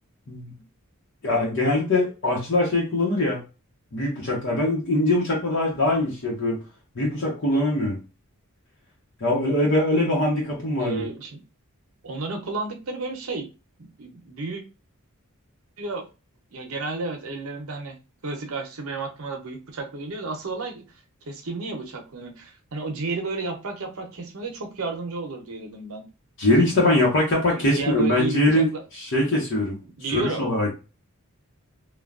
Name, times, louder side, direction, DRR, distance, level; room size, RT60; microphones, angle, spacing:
voice 1, 1.2-3.4 3.9-6.6 6.9-8.0 9.2-11.1 26.4-28.7 29.1-29.8 30.1-30.7, left 1 dB, 60° left, -3 dB, 0.9 m, -22 dB
voice 2, 10.8-11.4 12.0-13.5 14.0-14.6 15.8-16.0 16.5-18.0 18.2-20.8 21.3-26.1 27.5-28.8 30.0-30.4, right 3 dB, 75° right, 3 dB, 0.8 m, -32 dB
3.2 x 2.3 x 2.4 m, 0.30 s
head